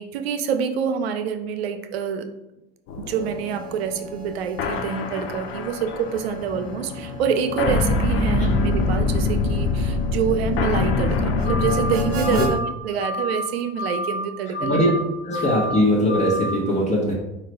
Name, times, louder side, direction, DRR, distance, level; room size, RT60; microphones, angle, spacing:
voice 1, 0.0-2.3 3.0-12.6 12.8-14.9, right 7 dB, 85° right, 8 dB, 0.5 m, -26 dB
sound 1, 2.9-12.6, left 3 dB, 45° left, 0.5 m, -24 dB
Harmonica, 3.0-12.5, right 4 dB, 50° right, 0.8 m, -39 dB
sound 2, 11.4-11.9 12.2-12.7 13.0-13.5 13.7-14.2 14.5-15.0 15.3-15.8 16.1-16.6, left 1 dB, 85° left, 1.3 m, -29 dB
voice 2, 15.2-17.1, equal, 25° left, -4 dB, 0.9 m, -20 dB
4.1 x 2.4 x 3.3 m, 0.93 s
hypercardioid pair, 85°, 30 cm